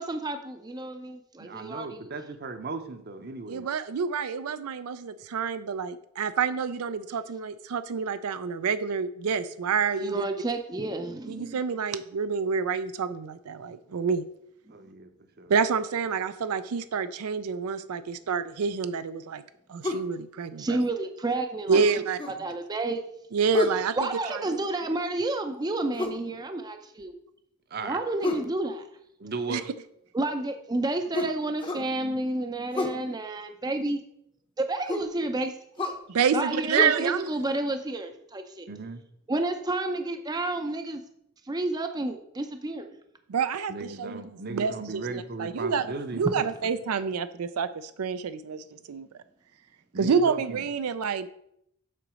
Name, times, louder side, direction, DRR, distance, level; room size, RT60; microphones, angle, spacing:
voice 1, 0.0-2.1 10.0-11.6 14.7-14.8 20.6-23.1 23.9-27.2 27.8-28.9 30.1-34.0 34.6-36.0 36.3-38.7 39.3-41.0 41.4-42.9, right 2 dB, 20° right, 6 dB, 0.5 m, -30 dB
voice 2, 1.4-3.7 14.7-15.1 15.4-15.5 22.4-22.5 27.7-28.0 29.2-29.7 38.7-39.0 43.7-46.7 49.9-50.6, right 3 dB, 45° right, 9 dB, 0.7 m, -37 dB
voice 3, 3.5-10.2 11.3-14.2 15.5-19.4 19.7-20.7 21.7-22.2 23.3-24.0 24.3-24.4 29.5-29.6 36.1-37.3 43.3-44.2 44.5-49.1 50.0-51.3, right 6 dB, 85° right, 12 dB, 0.4 m, -28 dB
sound 1, 19.8-20.1 21.7-22.4 23.5-23.9 26.0-26.2 28.2-28.5 31.1-31.9 32.7-33.0 34.9-35.1 35.8-36.0 36.7-36.9, left 2 dB, 25° left, 0.7 m, -29 dB
7.6 x 4.0 x 6.2 m, 0.75 s
head